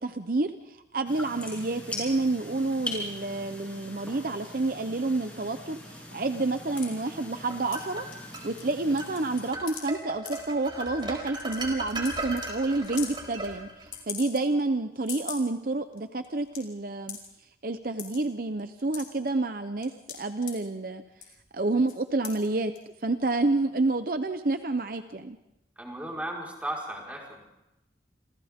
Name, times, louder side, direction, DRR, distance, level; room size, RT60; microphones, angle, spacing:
voice 1, 0.0-8.1 8.4-13.7 14.1-17.2 17.6-21.0 21.5-22.7 23.0-25.4, right 2 dB, 50° right, 9 dB, 0.8 m, -29 dB
sound 1, 1.1-9.5, left 1 dB, 10° left, 7.1 m, -41 dB
sound 2, 6.8-6.9 7.7-7.8 8.1-8.7 9.0-9.9 10.3-10.4 11.0-11.1 11.4-11.6 11.9-12.1 12.4-12.5 12.8-13.1 13.9-14.6 15.0-15.5 15.9-16.0 16.2-16.6 17.1-17.3 18.0-18.2 18.6-19.3 19.8-20.5 21.1-21.4 21.9-22.0 22.2-22.5 22.8-22.9, left 9 dB, 50° left, 4.8 m, -39 dB
sound 3, 7.2-8.5 9.0-9.2 9.5-14.0, right 2 dB, 25° right, 4.7 m, -37 dB
voice 2, 25.8-27.4, right 1 dB, 10° right, -2 dB, 4.8 m, -35 dB
30.0 x 27.0 x 3.7 m, 0.92 s
head